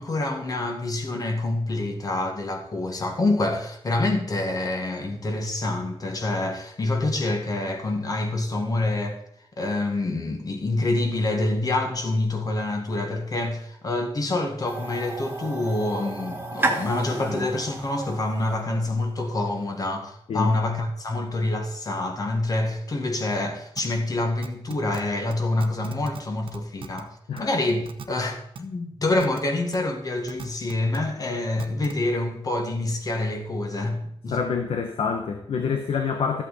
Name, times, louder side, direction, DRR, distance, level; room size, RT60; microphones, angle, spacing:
voice 1, 0.0-9.2 9.6-27.1 27.4-34.4, left 2 dB, 40° left, 1.8 m, -26 dB
sound 1, 14.7-19.6, right 2 dB, 20° right, 1.5 m, -33 dB
sound 2, 23.8-23.9 24.4-25.0 25.3-25.4 25.6-26.2 26.5-27.0 27.4-27.5 27.9-28.1 28.6-28.7 29.2-29.4 29.7-29.8 30.3-31.0 31.6-31.9, right 7 dB, 60° right, 0.9 m, -38 dB
voice 2, 34.3-36.4, left 6 dB, 75° left, 1.0 m, -26 dB
13.0 x 8.2 x 4.2 m
wide cardioid pair, 135°, 10 cm